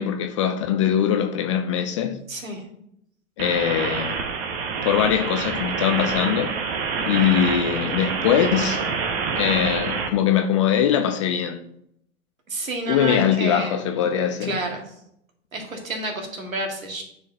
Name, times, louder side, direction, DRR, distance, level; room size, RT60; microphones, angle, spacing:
voice 1, 0.0-2.2 3.4-4.2 4.9-6.5 7.0-8.9 9.3-11.6 12.9-14.6, left 9 dB, 25° left, 0.3 m, -22 dB
voice 2, 2.3-2.6 12.5-13.8 14.4-14.8 15.5-17.0, right 2 dB, 80° right, 2.1 m, -30 dB
sound 1, 3.4-10.1, right 5 dB, 50° right, 1.1 m, -27 dB
9.5 x 4.6 x 2.8 m
figure-of-eight pair, 100°, 40 cm